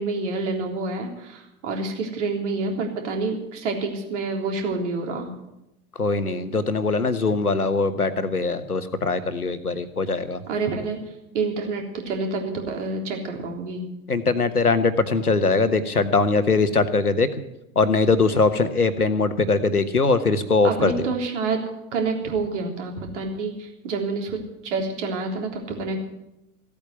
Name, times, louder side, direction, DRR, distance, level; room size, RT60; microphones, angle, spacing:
voice 1, 0.0-5.3 10.5-11.0 11.3-13.9 20.6-21.6 21.9-26.0, right 3 dB, 55° right, 2 dB, 3.6 m, -28 dB
voice 2, 6.0-10.4 14.1-17.3 17.7-21.1, left 3 dB, 85° left, 12 dB, 1.3 m, -21 dB
15.5 x 8.7 x 9.5 m, 0.88 s
figure-of-eight pair, 100°, 44 cm